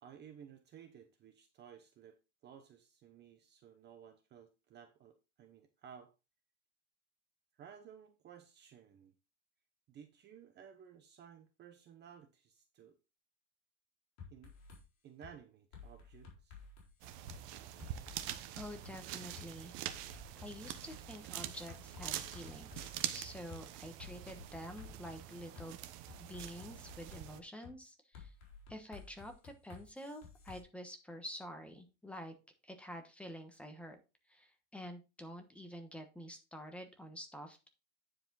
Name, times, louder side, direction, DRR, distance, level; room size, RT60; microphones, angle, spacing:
voice 1, 0.0-2.2 2.4-6.1 7.5-9.1 9.9-13.0 14.3-14.5 15.0-16.6 17.3-17.4, right 8 dB, 30° right, 8 dB, 0.8 m, -56 dB
sound 1, 14.2-14.8 15.2-15.4 15.7-17.4 17.8-19.0 19.4-19.5 19.9-23.1 23.5-23.6 24.0-25.7 26.1-27.2 27.6-27.8 28.1-30.6, left 6 dB, 45° left, 3.9 m, -54 dB
sound 2, 17.0-27.4, right 12 dB, 65° right, 1.0 m, -45 dB
voice 2, 18.5-19.7 20.4-25.8 26.2-28.3 28.7-32.3 32.6-34.0 34.3-37.7, equal, 5° left, 5 dB, 1.1 m, -48 dB
9.7 x 5.0 x 3.9 m, 0.28 s
cardioid pair, 160°, 36 cm